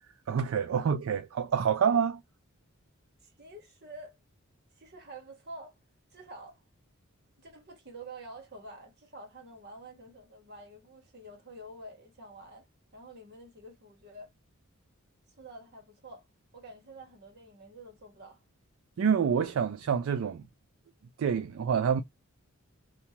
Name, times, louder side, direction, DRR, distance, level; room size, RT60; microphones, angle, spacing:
voice 1, 0.3-2.2 19.0-20.4 21.2-22.0, right 7 dB, 70° right, 0.3 m, -27 dB
voice 2, 3.2-4.1 4.8-5.8 6.1-6.6 7.4-12.7 12.9-14.3 15.4-16.3 16.5-18.4, right 1 dB, 50° right, 1.3 m, -48 dB
2.8 x 2.2 x 2.8 m
head